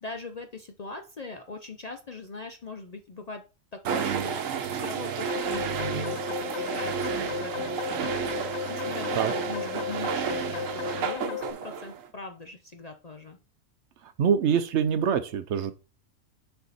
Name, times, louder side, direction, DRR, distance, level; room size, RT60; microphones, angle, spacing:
voice 1, 0.0-3.4 3.7-4.4 4.7-8.3 8.7-13.4, left 3 dB, 45° left, 0.5 m, -41 dB
sound 1, 3.8-12.1, right 7 dB, 90° right, 1.2 m, -31 dB
sound 2, 5.3-11.5, left 11 dB, 70° left, 0.8 m, -35 dB
voice 2, 14.2-15.7, right 7 dB, 65° right, 0.9 m, -24 dB
6.9 x 4.5 x 4.0 m
omnidirectional pair, 1.3 m